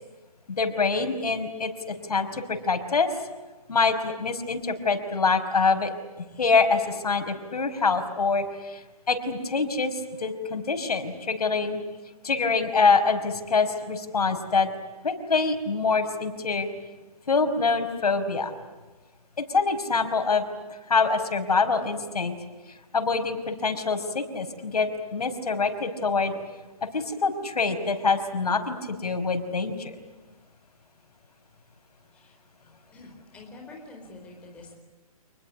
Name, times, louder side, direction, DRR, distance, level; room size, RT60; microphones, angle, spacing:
voice 1, 0.5-3.1 3.7-5.9 6.4-8.8 9.1-11.8 12.2-14.7 15.0-16.7 17.3-18.5 19.5-20.4 20.9-22.3 22.9-26.4 26.9-29.9, left 4 dB, 85° left, 6 dB, 5.5 m, -25 dB
voice 2, 32.9-34.8, left 2 dB, 5° left, 1 dB, 4.3 m, -46 dB
28.5 x 21.5 x 9.9 m, 1.2 s
hypercardioid pair, 175°, 19 cm